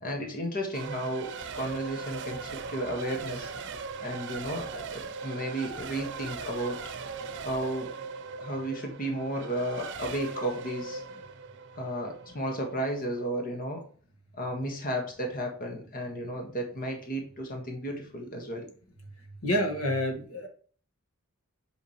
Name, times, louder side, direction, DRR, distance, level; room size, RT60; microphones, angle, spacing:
voice 1, 0.0-1.3 1.5-3.5 4.0-6.8 7.4-7.9 8.4-11.0 11.8-13.8 14.4-18.7, right 1 dB, 40° left, 2 dB, 1.5 m, -33 dB
Race car auto racing / Accelerating revving vroom / Mechanisms, 0.7-13.2, right 5 dB, 60° right, 0.7 m, -40 dB
voice 2, 19.4-20.5, equal, 75° left, 3 dB, 1.7 m, -28 dB
8.1 x 5.1 x 3.1 m, 0.43 s
head